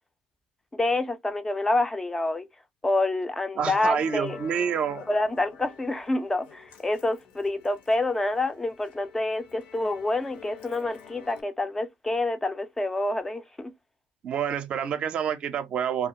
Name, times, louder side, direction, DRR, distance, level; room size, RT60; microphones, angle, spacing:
voice 1, 0.7-2.5 2.8-4.4 5.1-13.7, left 2 dB, 15° left, 0.4 m, -27 dB
Musical instrument, 3.6-11.4, left 7 dB, 75° left, 0.9 m, -48 dB
voice 2, 3.6-5.0 14.2-16.1, right 8 dB, 50° right, 0.5 m, -28 dB
2.4 x 2.2 x 2.7 m
supercardioid pair, 90°, 3 cm